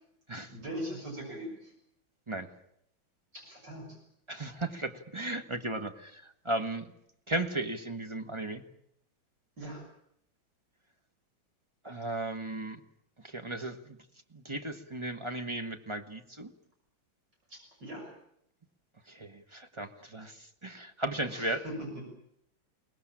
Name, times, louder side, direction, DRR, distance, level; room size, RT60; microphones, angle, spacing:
voice 1, 0.5-1.7 3.3-4.0 9.6-9.9 17.5-18.1 21.3-21.9, right 1 dB, 55° right, 0 dB, 7.1 m, -41 dB
voice 2, 4.3-6.8 7.3-8.6 11.8-12.8 13.2-14.0 14.3-16.5 19.1-21.6, right 2 dB, 20° right, 8 dB, 1.1 m, -36 dB
23.5 x 19.5 x 8.8 m, 0.72 s
omnidirectional pair, 2.2 m